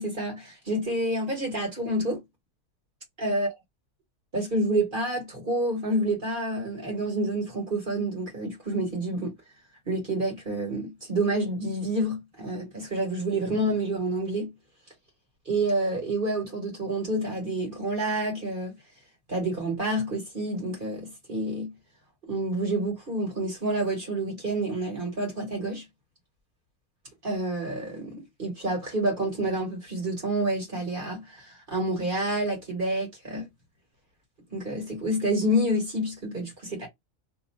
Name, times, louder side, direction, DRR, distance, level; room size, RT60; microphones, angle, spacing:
voice 1, 0.0-2.2 3.2-3.5 4.3-9.3 9.9-14.5 15.5-18.7 19.3-21.7 22.2-25.8 27.2-33.5 34.5-36.9, right 1 dB, 40° right, 1.4 m, -28 dB
2.7 x 2.4 x 4.1 m
omnidirectional pair, 1.5 m